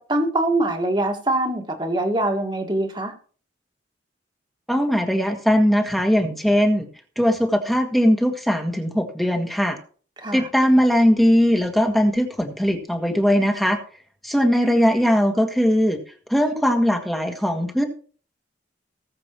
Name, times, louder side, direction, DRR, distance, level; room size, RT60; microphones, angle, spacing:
voice 1, 0.0-3.1 10.2-10.5, right 1 dB, 25° right, 4 dB, 1.9 m, -23 dB
voice 2, 4.7-6.9 7.1-9.8 10.3-13.8 14.2-16.0 16.3-17.8, equal, ahead, 3 dB, 1.6 m, -19 dB
19.5 x 7.6 x 3.1 m, 0.42 s
head